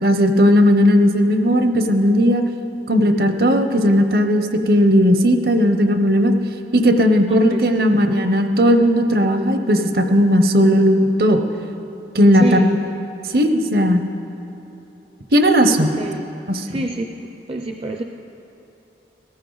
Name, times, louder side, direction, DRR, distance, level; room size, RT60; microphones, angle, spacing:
voice 1, 0.0-2.4 2.9-6.3 6.7-11.4 12.1-12.6 13.3-14.1 15.3-15.9 16.5-16.7, equal, 55° right, 7 dB, 0.8 m, -16 dB
voice 2, 7.3-7.9 12.3-12.7 16.0-16.3 16.6-17.1 17.5-18.0, right 2 dB, 30° right, 3 dB, 0.5 m, -27 dB
17.5 x 14.0 x 3.9 m, 2.9 s
head